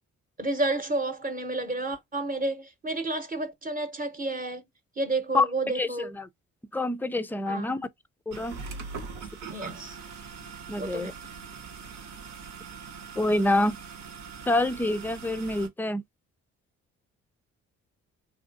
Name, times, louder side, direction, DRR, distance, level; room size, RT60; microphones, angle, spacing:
voice 1, 0.4-4.6 5.0-6.1 7.5-7.8 9.5-10.0 10.8-11.1, right 2 dB, 30° right, 0.9 m, -30 dB
voice 2, 5.7-6.3 6.7-7.9 8.3-8.6 10.7-11.1 13.2-13.8 14.5-16.0, left 2 dB, 5° left, 0.3 m, -26 dB
sound 1, 8.3-15.7, right 5 dB, 75° right, 0.9 m, -42 dB
3.2 x 2.6 x 2.6 m
cardioid pair, 90°, 30 cm